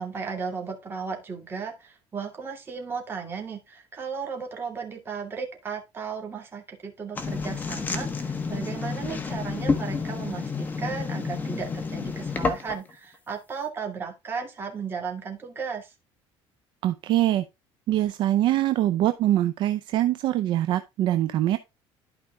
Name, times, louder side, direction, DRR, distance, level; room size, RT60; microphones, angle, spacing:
voice 1, 0.0-15.9, right 5 dB, 20° right, 2.4 m, -35 dB
sound 1, 7.2-12.9, left 4 dB, 15° left, 1.2 m, -30 dB
voice 2, 16.8-17.4 17.9-21.6, right 13 dB, 50° right, 0.5 m, -23 dB
12.0 x 5.0 x 3.5 m
cardioid pair, 175°, 10 cm